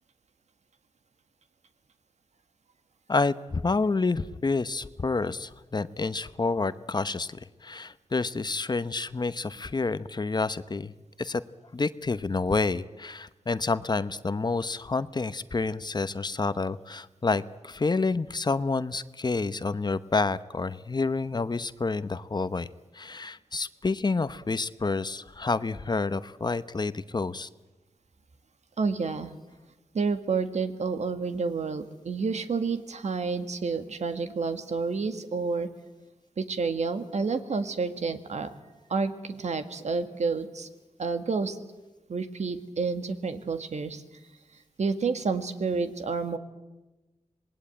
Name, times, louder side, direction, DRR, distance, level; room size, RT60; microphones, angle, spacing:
voice 1, 3.1-10.9 11.2-11.4 11.7-22.7 22.9-27.5, left 3 dB, 35° left, 14 dB, 0.9 m, -29 dB
voice 2, 28.8-29.3 29.9-35.7 36.4-38.5 38.9-40.7 41.0-41.6 42.1-44.0 44.8-46.4, right 4 dB, 70° right, 9 dB, 1.8 m, -29 dB
26.5 x 20.0 x 9.1 m, 1.1 s
wide cardioid pair, 85°, 12 cm